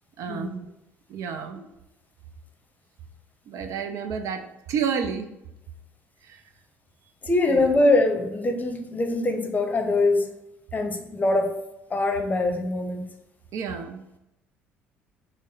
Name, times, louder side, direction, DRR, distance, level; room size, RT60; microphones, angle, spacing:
voice 1, 0.2-0.7 1.1-1.6 3.5-5.3 6.2-6.4 7.5-7.6 13.5-14.0, right 6 dB, 50° right, 7 dB, 0.5 m, -30 dB
voice 2, 7.2-10.3 10.7-11.5 11.9-13.0, left 2 dB, 25° left, 4 dB, 0.8 m, -23 dB
6.2 x 2.1 x 4.0 m, 0.90 s
figure-of-eight pair, 50°, 7 cm